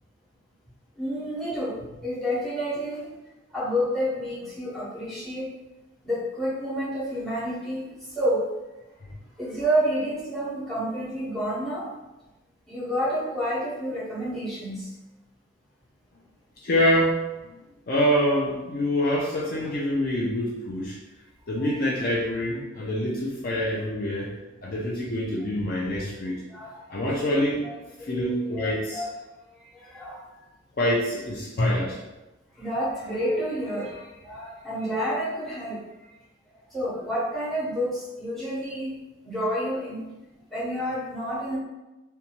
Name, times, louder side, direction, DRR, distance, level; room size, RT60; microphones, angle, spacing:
voice 1, 1.0-1.7 2.0-3.1 3.5-5.5 6.0-8.4 9.4-11.9 12.7-14.9 21.6-21.7 22.0-22.1 22.7-22.8 26.5-27.1 27.6-27.7 28.0-29.1 29.5-30.5 32.5-36.1 36.7-38.9 39.2-40.0 40.5-41.6, equal, ahead, -8 dB, 0.8 m, -29 dB
voice 2, 16.6-17.2 17.9-21.0 21.5-24.3 24.6-26.4 26.9-27.6 28.0-29.0 30.8-32.0, equal, 45° left, -4 dB, 0.4 m, -25 dB
2.6 x 2.2 x 2.9 m, 1.0 s
head